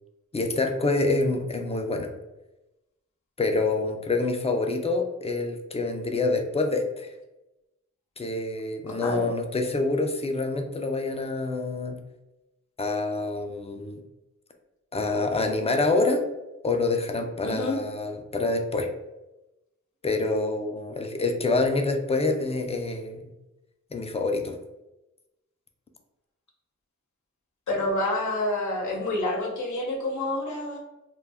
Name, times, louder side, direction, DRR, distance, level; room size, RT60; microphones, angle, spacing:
voice 1, 0.3-2.1 3.4-7.1 8.2-12.0 12.8-14.0 14.9-16.2 16.6-18.9 20.0-23.3 23.9-24.6, left 3 dB, 20° left, 4 dB, 0.4 m, -26 dB
voice 2, 8.9-9.3 17.4-17.8 27.7-30.8, left 2 dB, 80° left, 0 dB, 0.7 m, -28 dB
2.2 x 2.1 x 3.3 m, 0.98 s
wide cardioid pair, 65°, 30 cm